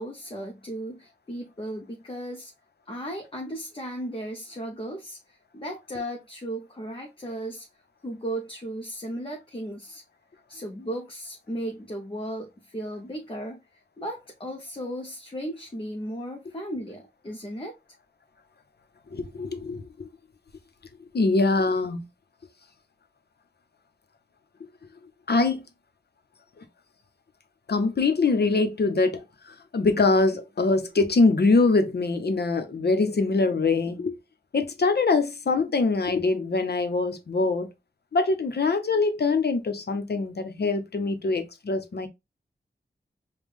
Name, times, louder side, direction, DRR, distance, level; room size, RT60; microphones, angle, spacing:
voice 1, 0.0-2.5 2.9-7.7 8.0-10.0 10.5-13.6 14.0-17.8, right 1 dB, 30° left, 0.8 m, -35 dB
voice 2, 19.1-20.1 21.1-22.1 25.3-25.6 26.6-26.7 27.7-34.2 34.5-37.7 38.1-42.1, left 3 dB, 70° left, 0.8 m, -23 dB
5.3 x 2.3 x 3.3 m
wide cardioid pair, 90°, 17 cm